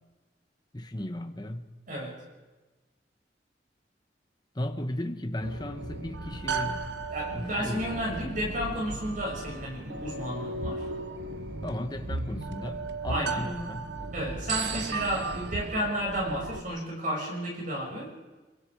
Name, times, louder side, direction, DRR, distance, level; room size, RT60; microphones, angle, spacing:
voice 1, 0.7-1.7 4.5-6.9 7.3-8.3 11.6-13.9 14.7-14.8, left 1 dB, 25° left, 7 dB, 1.4 m, -35 dB
sound 1, 5.4-16.6, right 3 dB, 70° right, 1.1 m, -35 dB
voice 2, 7.1-10.8 13.1-13.4 14.1-18.1, equal, 50° right, -1 dB, 6.6 m, -32 dB
25.0 x 22.5 x 4.9 m, 1.2 s
head